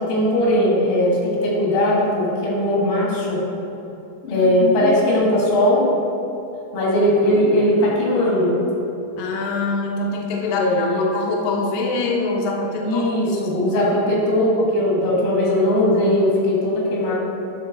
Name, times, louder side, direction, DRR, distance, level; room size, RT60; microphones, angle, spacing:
voice 1, 0.0-3.4 4.3-5.9 6.7-8.6 10.5-11.1 12.8-17.2, left 1 dB, 90° left, -5 dB, 3.5 m, -19 dB
voice 2, 4.2-4.5 4.8-4.9 9.2-13.1, left 3 dB, 70° left, 0 dB, 1.9 m, -24 dB
11.0 x 3.9 x 3.9 m, 3.0 s
omnidirectional pair, 4.0 m